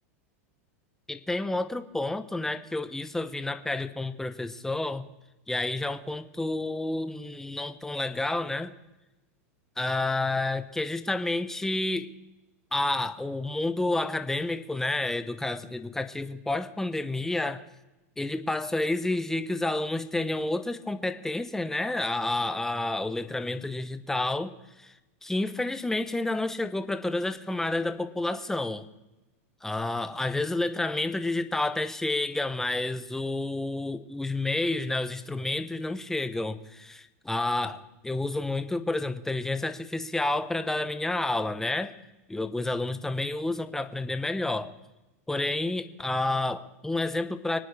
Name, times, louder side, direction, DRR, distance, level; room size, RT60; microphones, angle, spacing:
voice 1, 1.1-5.0 5.5-8.7 9.8-12.1 12.7-17.6 18.2-24.5 24.8-24.9 25.2-28.9 29.6-41.9 42.3-44.7 45.3-47.6, left 2 dB, 5° left, 10 dB, 1.0 m, -30 dB
25.5 x 9.3 x 4.9 m, 1.0 s
supercardioid pair, 130°, 8 cm